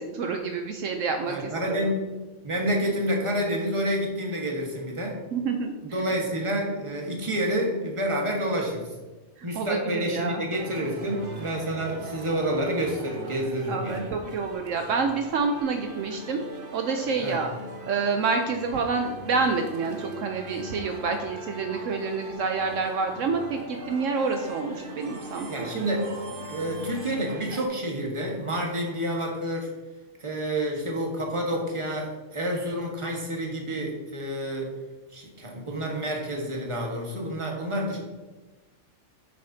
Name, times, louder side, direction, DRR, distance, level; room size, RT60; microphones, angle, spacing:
voice 1, 0.0-1.9 5.3-5.7 9.4-9.8 10.0-10.4 13.7-16.4 16.7-17.5 17.9-25.7, right 4 dB, 70° right, 4 dB, 1.0 m, -28 dB
voice 2, 1.3-2.1 2.4-5.2 5.8-8.9 9.4-14.1 17.2-17.4 25.5-26.1 26.5-29.7 30.2-34.7 35.1-38.0, right 1 dB, 25° right, 0 dB, 1.4 m, -29 dB
sound 1, 10.5-27.7, right 1 dB, 45° right, 1.0 m, -41 dB
9.3 x 6.6 x 2.7 m, 1.2 s
omnidirectional pair, 1.4 m